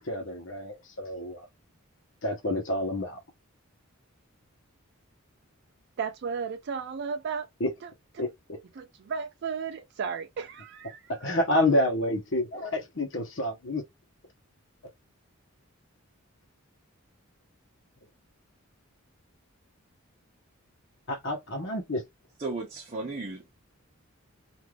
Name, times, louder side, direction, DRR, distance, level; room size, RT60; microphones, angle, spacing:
voice 1, 0.0-1.5 2.2-3.2 7.6-7.7 8.2-8.3 11.1-13.8 21.1-22.0, left 1 dB, 55° left, 0.9 m, -28 dB
voice 2, 6.0-7.5 7.8-7.9 8.8-11.4, right 6 dB, 50° right, 0.3 m, -34 dB
voice 3, 22.4-23.5, right 3 dB, 30° right, 0.7 m, -35 dB
3.2 x 2.5 x 2.3 m
head